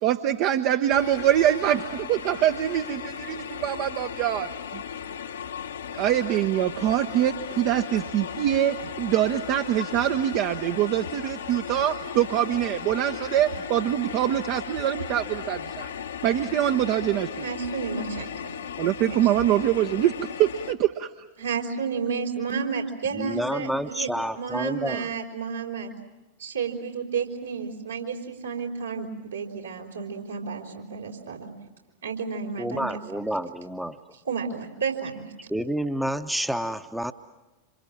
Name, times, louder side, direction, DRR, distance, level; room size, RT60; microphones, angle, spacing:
voice 1, 0.0-4.8 5.9-15.9 16.2-17.3 18.8-21.1, right 12 dB, 45° right, 8 dB, 0.9 m, -24 dB
sound 1, 0.9-20.7, left 7 dB, 65° left, 1.2 m, -36 dB
voice 2, 17.4-18.5 19.0-19.2 21.4-24.1 24.3-25.9 26.4-31.5 32.0-33.2 34.2-35.3, right 5 dB, 75° right, 0 dB, 4.7 m, -31 dB
voice 3, 23.1-25.1 32.6-34.0 35.5-37.1, equal, 5° right, 9 dB, 0.9 m, -29 dB
27.0 x 27.0 x 7.5 m, 1.1 s
figure-of-eight pair, 90°, 0 cm